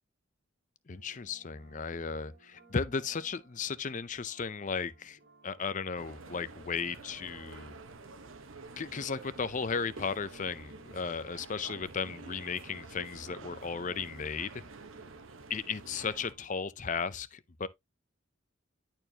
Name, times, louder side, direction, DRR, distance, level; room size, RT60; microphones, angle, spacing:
voice 1, 0.9-7.7 8.8-14.6 15.5-17.7, left 5 dB, 35° left, 0.5 m, -35 dB
sound 1, 0.9-17.1, right 3 dB, 50° right, 2.2 m, -63 dB
sound 2, 5.9-16.3, right 3 dB, 70° right, 1.0 m, -49 dB
11.0 x 4.5 x 2.8 m
head